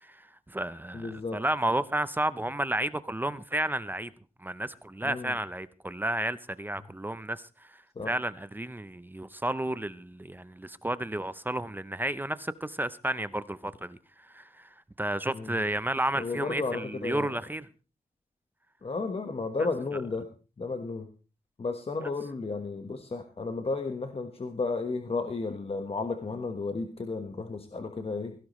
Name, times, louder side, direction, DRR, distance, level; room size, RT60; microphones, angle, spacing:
voice 1, 0.0-4.1 4.4-14.0 14.3-14.7 15.0-17.7 22.0-22.1, right 1 dB, 15° right, 0.6 m, -32 dB
voice 2, 0.9-1.4 5.0-5.4 7.9-8.1 15.3-15.6 16.1-17.4 18.8-20.3 20.6-21.1 21.6-28.3, left 3 dB, 40° left, 1.4 m, -33 dB
16.5 x 16.5 x 3.2 m
wide cardioid pair, 120°, 15 cm